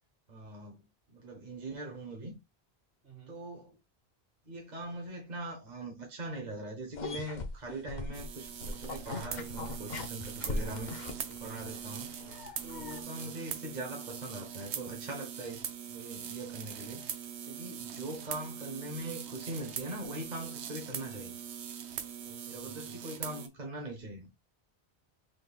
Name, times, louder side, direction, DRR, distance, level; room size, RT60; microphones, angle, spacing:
voice 1, 0.3-2.4 3.3-3.7 4.5-12.1 12.6-21.4 22.5-24.3, right 1 dB, 45° right, 1.0 m, -42 dB
voice 2, 3.0-3.4 13.0-13.3 22.0-23.0, right 2 dB, 60° right, 1.8 m, -56 dB
sound 1, 6.9-13.0, left 2 dB, 50° left, 0.8 m, -40 dB
sound 2, 8.1-23.5, right 8 dB, 90° right, 0.9 m, -42 dB
5.2 x 3.9 x 2.3 m
omnidirectional pair, 1.1 m